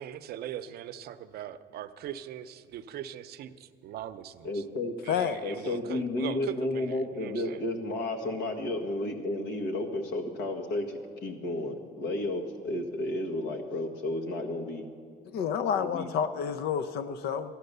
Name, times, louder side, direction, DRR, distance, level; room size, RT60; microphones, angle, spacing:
voice 1, 0.0-4.6 5.0-7.6, right 10 dB, 70° right, 11 dB, 0.6 m, -40 dB
voice 2, 4.4-5.0 5.4-10.9 11.2-14.9 15.7-16.1, left 2 dB, 85° left, 3 dB, 1.7 m, -32 dB
voice 3, 5.1-5.4 15.3-17.5, left 7 dB, 70° left, 12 dB, 0.5 m, -29 dB
14.0 x 11.5 x 6.7 m, 2.2 s
cardioid pair, 110°, 17 cm